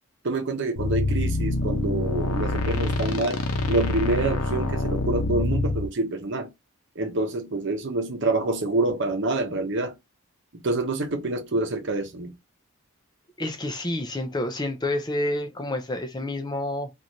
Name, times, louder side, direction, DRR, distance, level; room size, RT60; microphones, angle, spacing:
voice 1, 0.2-6.5 7.0-9.9 10.6-12.4, right 2 dB, 50° right, 0.8 m, -27 dB
sound 1, 0.8-5.9, left 2 dB, 80° left, 0.7 m, -26 dB
voice 2, 13.4-16.9, left 1 dB, 20° left, 0.5 m, -29 dB
3.2 x 2.6 x 2.7 m
head